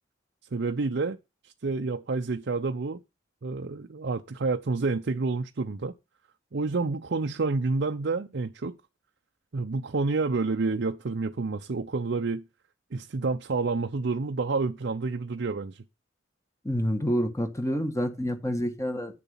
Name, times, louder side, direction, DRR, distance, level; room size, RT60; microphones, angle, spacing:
voice 1, 0.5-1.2 1.4-3.0 3.4-6.0 6.5-8.8 9.5-12.4 12.9-15.8, right 3 dB, 60° right, 0.6 m, -29 dB
voice 2, 16.6-19.2, equal, 15° left, 1.7 m, -28 dB
9.3 x 7.0 x 5.6 m
head